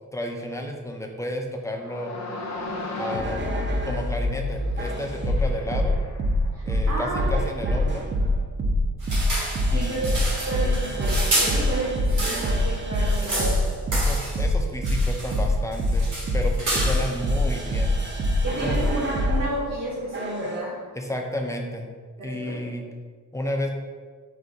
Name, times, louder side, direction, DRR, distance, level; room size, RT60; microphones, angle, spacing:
voice 1, 0.1-2.1 3.0-6.0 6.6-8.1 9.7-10.2 13.9-17.9 18.6-18.8 21.0-21.9 22.2-22.8 23.3-23.7, left 1 dB, 10° left, 1 dB, 0.5 m, -32 dB
sound 1, 1.8-6.6, left 2 dB, 60° left, 0.6 m, -31 dB
sound 2, 3.1-4.1 4.8-19.4 20.1-20.5, left 1 dB, 40° right, 0.6 m, -24 dB
voice 2, 6.5-7.5 9.6-10.1 10.3-13.6 18.4-20.8 22.2-22.6, right 1 dB, 60° right, -7 dB, 1.0 m, -31 dB
sound 3, 9.0-12.6 12.9-14.5 14.8-15.4 15.7-17.2, right 1 dB, 75° right, 1.5 m, -29 dB
4.0 x 2.6 x 4.7 m, 1.5 s
wide cardioid pair, 125°, 30 cm